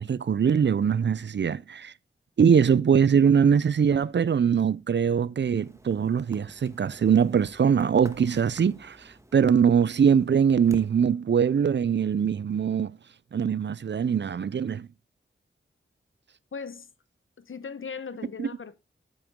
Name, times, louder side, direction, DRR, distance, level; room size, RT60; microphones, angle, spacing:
voice 1, 0.0-1.9 2.4-13.0 13.3-14.9 18.4-18.5, right 7 dB, 60° right, 0.5 m, -22 dB
sound 1, 5.6-10.9, right 1 dB, 15° right, 1.2 m, -48 dB
voice 2, 16.5-16.9 17.4-18.8, left 5 dB, 75° left, 1.0 m, -38 dB
9.0 x 8.7 x 3.6 m
wide cardioid pair, 80°, 21 cm